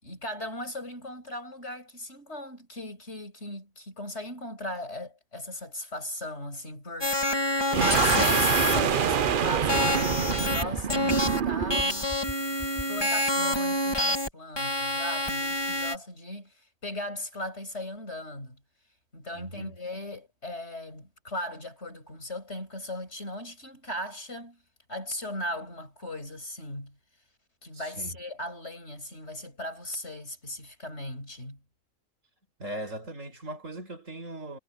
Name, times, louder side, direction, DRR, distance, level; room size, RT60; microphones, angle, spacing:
voice 1, 0.0-12.1 12.9-16.5 16.8-18.6 19.1-24.6 24.9-27.0 27.6-31.6, left 1 dB, 55° left, 7.5 m, -38 dB
sound 1, 7.0-8.8 9.7-10.6 10.9-11.4 11.7-14.3 14.6-16.0, left 1 dB, 20° left, 2.2 m, -27 dB
sound 2, 7.7-12.0, right 8 dB, 50° right, 0.8 m, -26 dB
sound 3, 8.1-8.3 8.6-8.8 9.1-9.3 9.6-9.8 10.1-10.3 10.6-10.8 11.1-11.3 11.6-11.8 12.1-12.3 12.6-12.8, equal, ahead, 3.4 m, -36 dB
voice 2, 19.3-19.8 27.7-28.2 32.6-34.6, right 1 dB, 75° right, 5.8 m, -39 dB
omnidirectional pair, 1.3 m